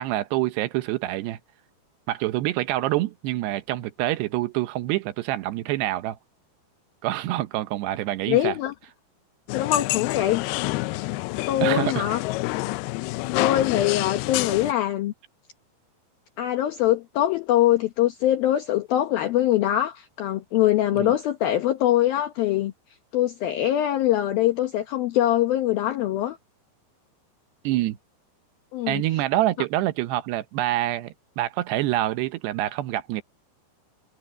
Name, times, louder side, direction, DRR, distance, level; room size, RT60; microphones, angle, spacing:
voice 1, 0.0-1.4 2.1-6.2 7.0-8.6 11.6-12.1 20.9-21.1 27.6-28.0 28.9-33.2, right 15 dB, 80° right, 2.9 m, -26 dB
voice 2, 8.3-8.7 9.5-10.4 11.5-12.2 13.3-15.1 16.4-22.7 23.1-26.4 28.7-29.0, left 13 dB, 70° left, 2.7 m, -23 dB
sound 1, 9.5-14.7, left 21 dB, 85° left, 2.2 m, -28 dB
omnidirectional pair, 5.0 m